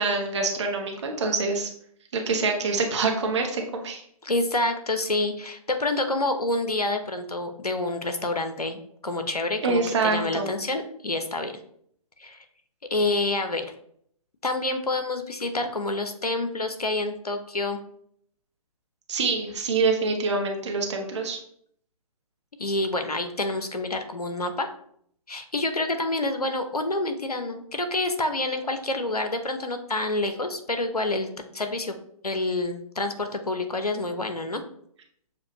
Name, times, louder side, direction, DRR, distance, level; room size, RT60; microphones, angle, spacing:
voice 1, 0.0-1.7 2.1-4.0 9.6-10.5 19.1-21.4, right 4 dB, 50° right, 2 dB, 1.0 m, -25 dB
voice 2, 4.2-11.5 12.2-12.4 12.9-13.7 14.4-17.8 22.6-24.7 25.3-31.9 32.2-34.6, left 2 dB, 85° left, 7 dB, 0.8 m, -28 dB
6.8 x 2.6 x 3.0 m, 0.66 s
figure-of-eight pair, 130°, 19 cm